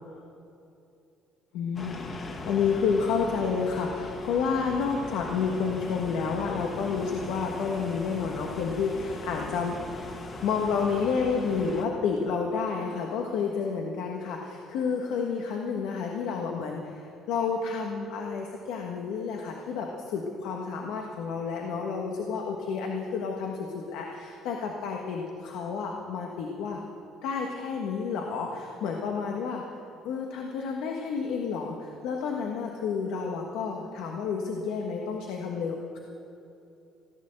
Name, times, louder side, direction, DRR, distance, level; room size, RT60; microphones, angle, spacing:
voice 1, 1.5-2.0 2.4-9.8 10.4-26.8 27.2-29.6 30.0-36.0, left 5 dB, 85° left, 1 dB, 1.5 m, -30 dB
sound 1, 1.8-11.9, left 2 dB, 35° left, 1.8 m, -40 dB
16.0 x 11.0 x 7.8 m, 2.8 s
cardioid pair, 110°, 0 cm